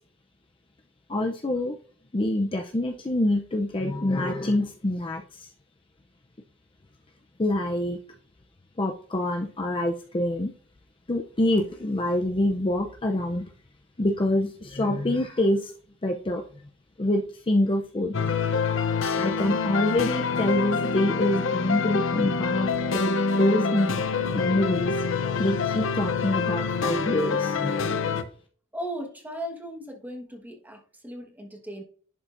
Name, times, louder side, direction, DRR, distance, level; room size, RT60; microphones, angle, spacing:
voice 1, 1.1-1.8 2.1-5.5 7.4-8.0 8.8-10.5 11.1-13.5 14.0-15.7 16.0-16.4 17.0-18.5 19.2-24.0 24.3-25.0 25.4-28.3, left 1 dB, 25° left, 2 dB, 0.6 m, -26 dB
sound 1, 18.1-28.2, left 5 dB, 70° left, 0.7 m, -26 dB
voice 2, 28.7-31.8, equal, 10° right, 3 dB, 1.4 m, -37 dB
11.0 x 4.6 x 2.6 m, 0.43 s
head